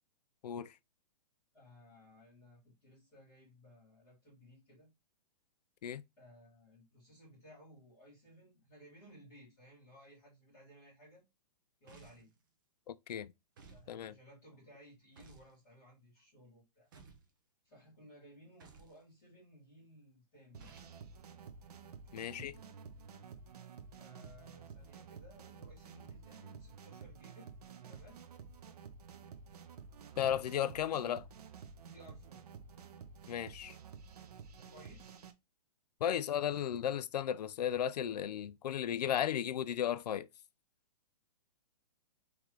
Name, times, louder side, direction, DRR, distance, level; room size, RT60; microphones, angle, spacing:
voice 1, 1.5-4.9 6.2-11.2 11.8-12.3 13.7-16.9 17.6-20.7 24.0-27.6 27.8-28.2 31.9-32.4 34.5-35.2, equal, 15° left, 2.3 m, -59 dB
sound 1, 11.9-12.4 13.6-13.9 15.2-15.5 16.9-17.3 18.6-19.0 20.6-21.0, right 5 dB, 30° right, 0.6 m, -57 dB
voice 2, 12.9-13.3 13.9-14.1 22.1-22.6 30.2-31.3 33.3-33.8 36.0-40.3, left 10 dB, 80° left, 0.4 m, -35 dB
sound 2, 20.5-35.3, right 6 dB, 70° right, 0.6 m, -52 dB
3.8 x 2.9 x 3.0 m
hypercardioid pair, 180°, 20 cm